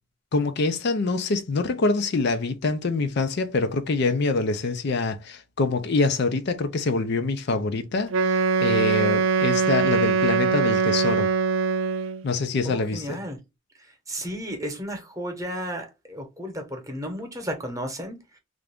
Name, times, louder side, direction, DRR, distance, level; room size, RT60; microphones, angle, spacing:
voice 1, 0.3-11.3 12.2-13.2, left 3 dB, 55° left, 0.5 m, -25 dB
Wind instrument woodwind instrument, 8.1-12.3, right 5 dB, 90° right, 0.4 m, -22 dB
voice 2, 12.6-13.4 13.8-18.4, equal, 15° right, 1.0 m, -34 dB
3.4 x 2.5 x 3.4 m
head